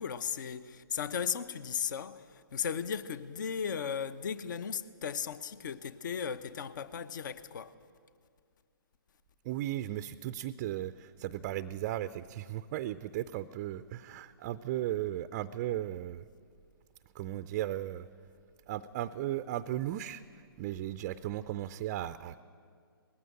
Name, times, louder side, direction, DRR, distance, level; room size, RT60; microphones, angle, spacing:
voice 1, 0.0-7.7, left 7 dB, 55° left, 0.9 m, -36 dB
voice 2, 9.4-16.3 17.1-18.1 18.7-22.4, right 13 dB, 25° right, 0.4 m, -36 dB
19.5 x 15.5 x 10.0 m
figure-of-eight pair, 135°, 13 cm